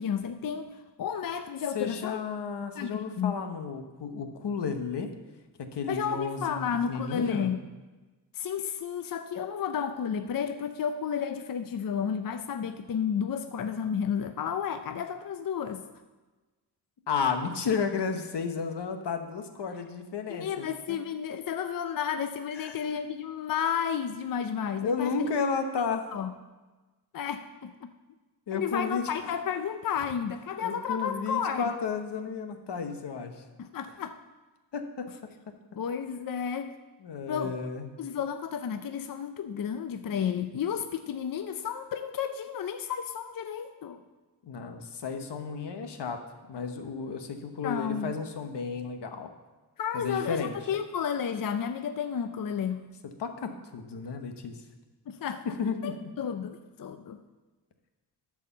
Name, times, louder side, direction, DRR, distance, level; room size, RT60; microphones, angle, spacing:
voice 1, 0.0-2.2 2.8-3.3 5.9-7.6 8.3-15.8 20.3-25.3 25.8-25.9 26.1-26.3 27.1-27.9 28.5-31.8 33.6-34.2 35.7-36.7 37.3-37.5 38.0-44.0 47.6-48.1 49.8-52.9 55.1-55.4 55.8-57.2, left 7 dB, 55° left, 9 dB, 0.5 m, -32 dB
voice 2, 1.7-5.1 5.6-7.5 17.1-21.0 22.6-22.8 24.8-26.1 28.5-29.3 30.0-30.1 30.6-33.4 34.7-35.1 35.5-35.6 37.0-37.9 44.4-46.2 46.5-49.3 49.9-50.7 53.2-54.6 55.6-56.1, left 5 dB, 85° left, 6 dB, 1.1 m, -33 dB
12.5 x 4.9 x 7.0 m, 1.2 s
wide cardioid pair, 135°, 40 cm